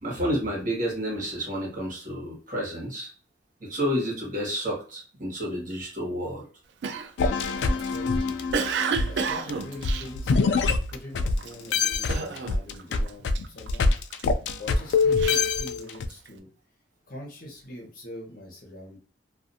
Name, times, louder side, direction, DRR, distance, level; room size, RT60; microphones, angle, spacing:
voice 1, 0.0-3.1 3.6-6.4, equal, 50° right, -3 dB, 1.2 m, -30 dB
Cough, 6.8-10.9 11.4-11.7 12.1-12.8 13.1-14.2 14.8-16.3, right 6 dB, 70° right, 0.3 m, -31 dB
sound 1, 7.2-11.4 11.7-16.1, left 4 dB, 85° left, 0.3 m, -25 dB
voice 2, 7.6-8.4 9.0-10.6 10.9-13.9 14.2-16.5 17.1-19.0, left 1 dB, 55° left, -1 dB, 1.0 m, -43 dB
2.4 x 2.4 x 2.6 m, 0.39 s
head